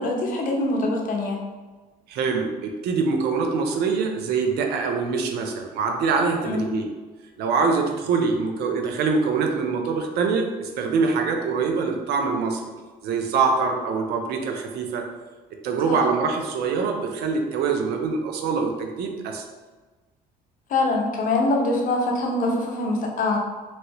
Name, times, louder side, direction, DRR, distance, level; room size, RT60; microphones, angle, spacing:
voice 1, 0.0-1.4 6.4-6.7 15.9-16.0 20.7-23.4, left 2 dB, 55° left, 0 dB, 0.7 m, -24 dB
voice 2, 2.1-6.9 7.4-12.6 13.0-15.0 15.6-19.4, right 4 dB, 75° right, 3 dB, 0.5 m, -24 dB
3.0 x 2.7 x 2.9 m, 1.3 s
cardioid pair, 110°, 17 cm